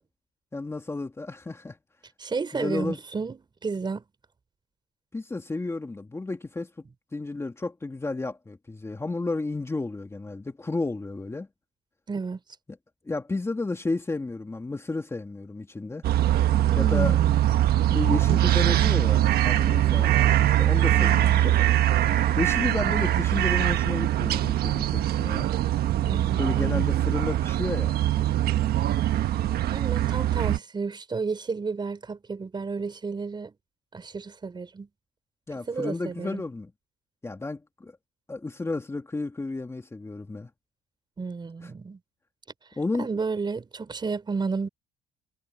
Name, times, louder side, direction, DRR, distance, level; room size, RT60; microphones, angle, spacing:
voice 1, 0.5-1.8 2.5-3.0 5.1-6.7 7.1-11.5 13.1-16.0 16.8-17.2 17.9-21.5 22.4-25.5 26.4-27.9 35.5-36.7 37.2-37.9 38.3-40.5 41.6-41.7 42.8-43.1, left 3 dB, 15° left, 2.5 m, -32 dB
voice 2, 2.2-4.0 12.1-12.4 16.7-17.4 20.8-21.4 26.1-26.8 29.7-33.5 33.9-34.9 35.7-36.4 41.2-42.0 43.0-44.7, right 4 dB, 25° right, 4.3 m, -32 dB
sound 1, 16.0-30.6, right 13 dB, 65° right, 1.4 m, -22 dB
cardioid pair, 110°, 17 cm